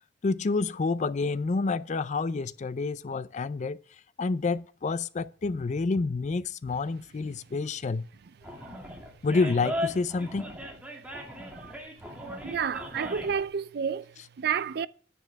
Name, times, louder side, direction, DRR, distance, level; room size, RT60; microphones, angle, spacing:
voice 1, 0.2-3.8 4.2-8.1 9.2-10.5, left 3 dB, 40° left, 0.4 m, -28 dB
Animal, 8.4-13.4, left 1 dB, 10° right, 2.4 m, -37 dB
voice 2, 12.1-14.9, right 7 dB, 60° right, 0.4 m, -31 dB
9.9 x 9.5 x 3.4 m
head